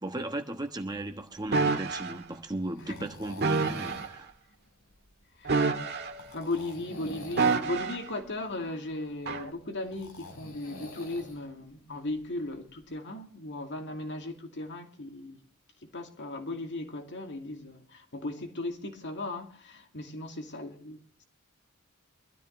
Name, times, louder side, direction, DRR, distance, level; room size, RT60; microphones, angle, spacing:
voice 1, 0.0-4.3, right 1 dB, 20° right, 1.2 m, -36 dB
sound 1, 0.9-12.9, left 1 dB, 90° left, 4.7 m, -48 dB
sound 2, 1.5-2.1 3.4-4.1 5.4-6.4 7.4-8.1 9.3-9.5, right 4 dB, 50° right, 1.6 m, -28 dB
voice 2, 6.3-15.4 15.8-21.2, left 2 dB, 55° left, 2.4 m, -37 dB
23.0 x 13.0 x 3.1 m
head